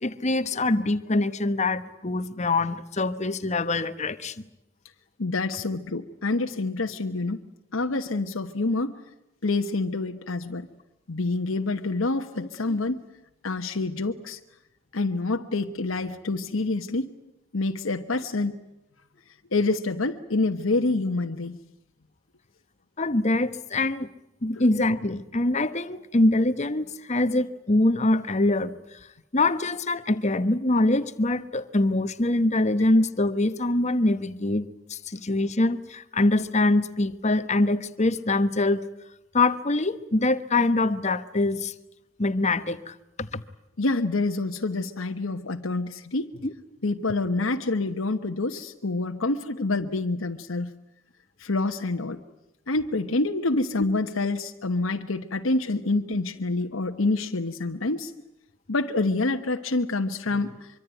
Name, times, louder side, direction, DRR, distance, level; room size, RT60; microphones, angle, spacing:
voice 1, 0.0-4.3 23.0-24.1 24.4-28.7 29.3-38.8 39.3-41.7 42.2-43.4 46.4-46.5, left 2 dB, 35° left, 12 dB, 1.1 m, -24 dB
voice 2, 5.2-7.4 7.7-9.0 9.4-10.7 11.1-13.0 13.4-14.4 14.9-17.1 17.5-18.5 19.5-21.6 24.5-24.6 43.8-46.3 46.8-50.7 51.4-52.2 52.7-58.1 58.7-60.7, left 2 dB, 90° left, 4 dB, 1.2 m, -27 dB
24.5 x 24.5 x 9.1 m, 0.88 s
head